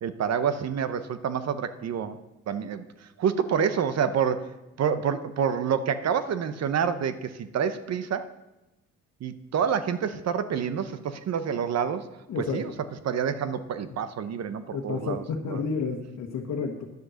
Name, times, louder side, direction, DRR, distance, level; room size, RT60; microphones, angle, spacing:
voice 1, 0.0-2.2 2.5-2.8 3.2-4.5 4.8-8.2 9.2-12.1 12.4-12.7 13.0-15.6, right 7 dB, 60° right, 11 dB, 0.9 m, -28 dB
voice 2, 12.3-12.6 14.7-16.9, left 5 dB, 65° left, -1 dB, 1.3 m, -30 dB
11.0 x 7.7 x 6.3 m, 0.99 s
cardioid pair, 90°, 30 cm